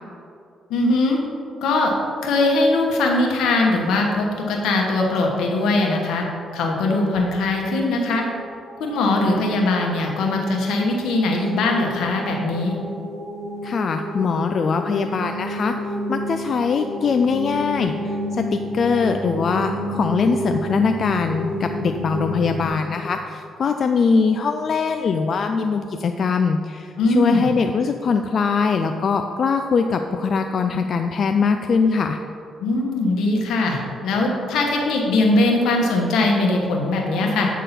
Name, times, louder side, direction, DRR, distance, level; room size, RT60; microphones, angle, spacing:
voice 1, 0.7-1.2 1.6-1.9 2.2-6.2 6.5-8.3 8.8-12.8 27.0-27.5 32.6-37.5, left 2 dB, 80° left, 0 dB, 1.2 m, -20 dB
sound 1, 7.0-22.7, equal, 35° right, 1.3 m, -31 dB
voice 2, 13.6-15.8 16.1-32.2, left 5 dB, 50° left, 6 dB, 0.3 m, -22 dB
8.3 x 3.7 x 5.7 m, 2.5 s
cardioid pair, 90°, 0 cm